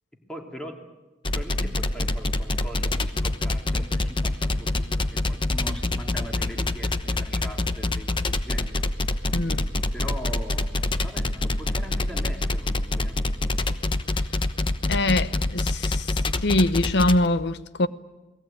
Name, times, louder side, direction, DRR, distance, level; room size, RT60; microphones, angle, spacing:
voice 1, 0.1-0.9 1.3-8.8 9.9-13.2, equal, 5° left, 3.0 m, -40 dB
sound 1, 1.2-17.3, left 2 dB, 25° left, 1.0 m, -25 dB
voice 2, 9.3-9.7 14.9-16.1 16.4-17.9, left 1 dB, 65° left, 1.0 m, -23 dB
29.5 x 19.0 x 9.0 m
head